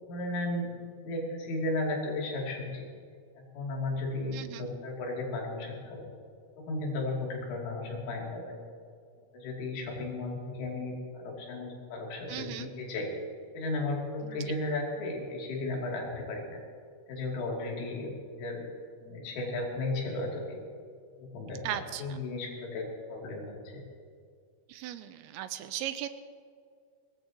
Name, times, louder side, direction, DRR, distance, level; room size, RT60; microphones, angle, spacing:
voice 1, 0.1-2.9 3.4-6.1 6.6-8.6 9.3-13.1 13.5-16.6 17.1-18.7 19.0-20.6 21.2-23.9, left 2 dB, 90° left, -2 dB, 5.4 m, -35 dB
voice 2, 4.3-4.7 12.3-12.7 14.4-14.5 21.6-22.2 24.7-26.1, right 12 dB, 80° right, 10 dB, 2.8 m, -37 dB
23.0 x 19.5 x 3.0 m, 2.2 s
omnidirectional pair, 5.5 m